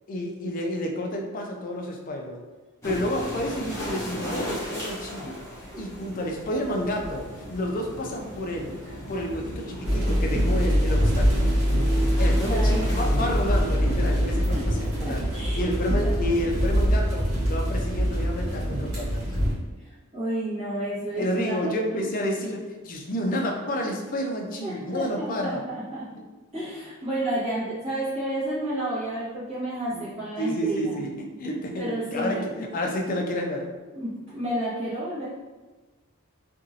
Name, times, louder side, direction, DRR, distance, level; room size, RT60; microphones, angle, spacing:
voice 1, 0.1-2.5 2.8-5.4 5.8-8.8 9.1-11.5 12.2-15.2 15.6-19.2 21.2-25.6 26.2-26.3 29.9-30.1 30.4-33.7, equal, 40° left, 2 dB, 0.4 m, -30 dB
sound 1, 2.8-13.1, equal, 15° left, 0.9 m, -38 dB
sound 2, 7.3-15.5, equal, 55° right, 0.4 m, -44 dB
sound 3, 9.8-19.5, equal, 70° right, 1.2 m, -23 dB
voice 2, 12.4-12.8 13.8-13.9 14.3-15.6 16.0-16.1 16.6-16.7 20.1-22.0 24.6-26.1 26.5-31.0 31.8-32.5 33.9-35.3, right 1 dB, 30° right, -11 dB, 1.4 m, -31 dB
2.9 x 2.5 x 2.7 m, 1.2 s
head